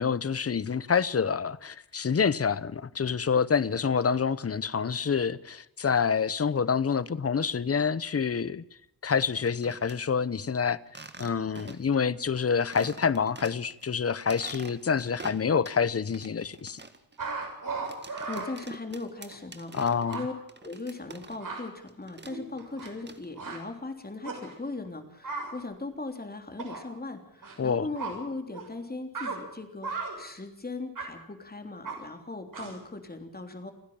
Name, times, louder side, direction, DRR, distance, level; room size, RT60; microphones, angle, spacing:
voice 1, 0.0-8.6 9.0-10.8 11.2-16.8 19.7-20.2 27.6-27.9, left 6 dB, 40° left, 0.9 m, -27 dB
sound 1, 9.3-10.0 10.9-12.0 12.3-12.4 12.7-13.9 14.2-15.8 16.1-21.6 21.9-23.5, right 3 dB, 30° right, 1.9 m, -47 dB
sound 2, 17.2-18.5 19.3-19.4 19.8-19.9 20.1-20.2 21.2-21.6 22.3-23.1 23.4-23.6 24.2-24.5 25.2-25.5 26.6-26.9 27.4-27.6 27.9-28.1 28.5-28.7 29.1-29.4 29.8-30.2 31.0-31.1 31.8-32.0 32.5-32.8, right 4 dB, 65° right, 6.9 m, -36 dB
voice 2, 18.0-20.3 20.6-33.7, left 3 dB, 25° left, 3.4 m, -39 dB
29.0 x 10.5 x 8.7 m
wide cardioid pair, 90°, 35 cm